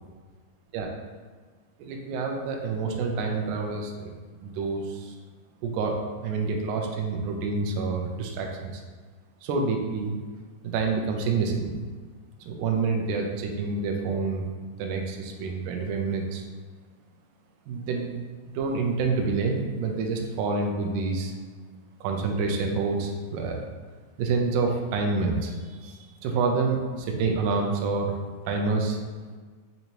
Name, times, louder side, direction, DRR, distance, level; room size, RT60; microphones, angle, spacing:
voice 1, 1.8-4.1 4.4-5.2 5.6-8.8 9.4-10.2 10.6-11.8 12.5-14.5 14.8-16.4 17.7-18.2 18.6-21.3 22.0-23.6 24.2-28.2 28.5-29.0, right 4 dB, 80° right, 2 dB, 1.9 m, -28 dB
6.7 x 2.7 x 2.9 m, 1.5 s
omnidirectional pair, 3.8 m